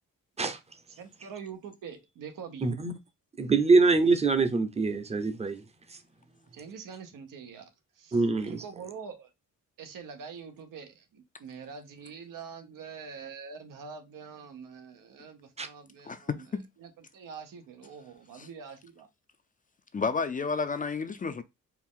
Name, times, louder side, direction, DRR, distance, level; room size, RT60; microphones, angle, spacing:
voice 1, 1.0-2.7 6.5-7.6 8.0-9.3 9.8-16.5 16.8-19.1, right 6 dB, 90° right, 1.0 m, -44 dB
voice 2, 2.6-2.9 3.4-5.6 8.1-8.6 15.6-15.7, right 3 dB, 20° right, 0.6 m, -24 dB
voice 3, 16.0-16.6 18.3-18.5 19.9-21.4, left 5 dB, 25° left, 0.4 m, -31 dB
4.5 x 2.5 x 3.6 m
cardioid pair, 120°, 31 cm